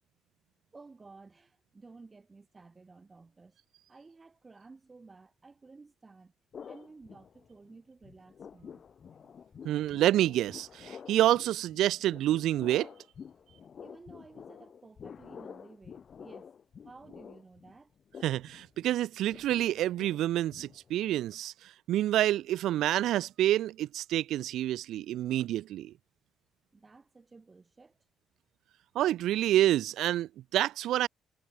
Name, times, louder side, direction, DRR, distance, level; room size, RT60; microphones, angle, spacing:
voice 1, 0.7-3.6 3.9-6.3 6.7-8.8 13.8-16.6 16.8-17.9 26.7-28.0, right 3 dB, 25° right, 4.8 m, -54 dB
sound 1, 6.5-7.8 8.0-21.2, left 7 dB, 50° left, 2.7 m, -49 dB
voice 2, 9.6-12.9 18.2-25.9 28.9-31.1, right 13 dB, 80° right, 0.5 m, -28 dB
cardioid pair, 90°, 0 cm